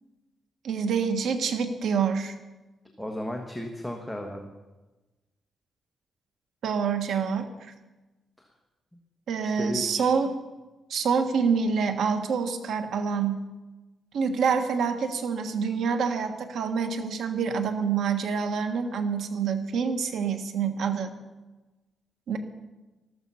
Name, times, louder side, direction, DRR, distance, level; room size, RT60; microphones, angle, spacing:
voice 1, 0.6-2.3 6.6-7.7 9.3-10.3 10.9-13.4 14.1-21.1 22.3-22.4, right 6 dB, 80° right, 7 dB, 1.4 m, -27 dB
voice 2, 3.0-4.5 8.4-8.5 9.4-10.1, left 1 dB, 5° left, 2 dB, 1.3 m, -35 dB
13.5 x 13.0 x 5.6 m, 1.1 s
cardioid pair, 135°, 0 cm